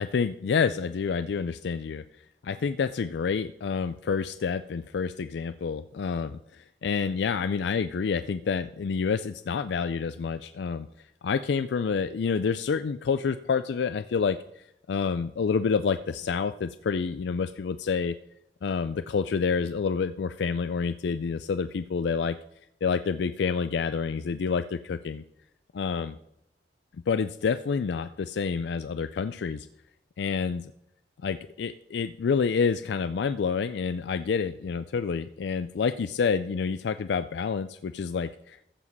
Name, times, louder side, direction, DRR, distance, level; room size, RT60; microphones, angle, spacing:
voice 1, 0.0-2.0 2.4-10.9 11.2-18.2 18.6-22.4 22.8-25.2 25.7-26.2 27.1-29.7 30.2-30.7 31.2-38.6, left 5 dB, 70° left, 12 dB, 0.4 m, -28 dB
14.0 x 5.0 x 5.4 m, 0.76 s
head